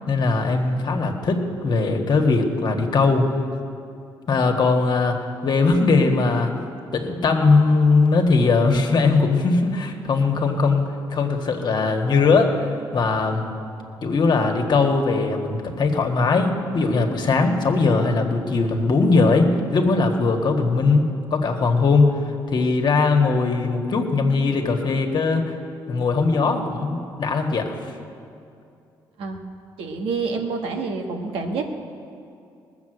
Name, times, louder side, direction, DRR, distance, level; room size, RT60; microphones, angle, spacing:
voice 1, 0.1-3.3 4.3-5.2 5.4-6.5 6.9-12.7 12.9-13.5 14.0-22.2 22.5-25.5 25.9-27.7, left 3 dB, 55° left, 3 dB, 1.6 m, -20 dB
voice 2, 29.8-31.6, right 4 dB, 80° right, 3 dB, 1.5 m, -27 dB
19.5 x 7.0 x 7.9 m, 2.5 s
supercardioid pair, 70°, 9 cm